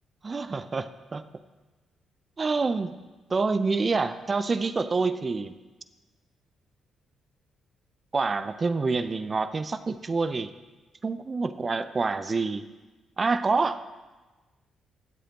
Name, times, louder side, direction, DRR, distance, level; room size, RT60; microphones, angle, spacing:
voice 1, 0.2-1.2 2.4-2.9 3.3-5.5 8.1-10.5 11.0-12.7 13.2-13.8, right 4 dB, 40° right, 12 dB, 0.7 m, -27 dB
24.0 x 8.1 x 3.0 m, 1.2 s
hypercardioid pair, 45°, 0 cm